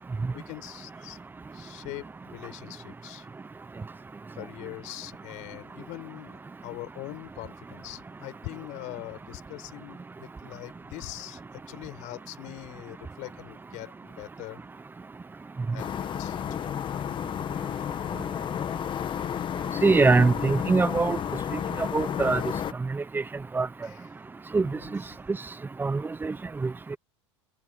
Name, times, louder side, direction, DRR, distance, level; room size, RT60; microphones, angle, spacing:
voice 1, 0.3-1.2 1.5-3.3 4.3-14.6 15.7-16.7 23.8-24.1 24.6-25.1, left 22 dB, 55° left, 7.4 m, -42 dB
sound 1, 15.8-22.7, left 9 dB, 30° left, 1.6 m, -31 dB
voice 2, 19.8-21.2 21.8-22.4 22.9-23.2 23.5-23.7 24.5-25.0 25.8-26.3 26.6-27.0, right 4 dB, 15° right, 1.0 m, -23 dB
hypercardioid pair, 85°, 15 cm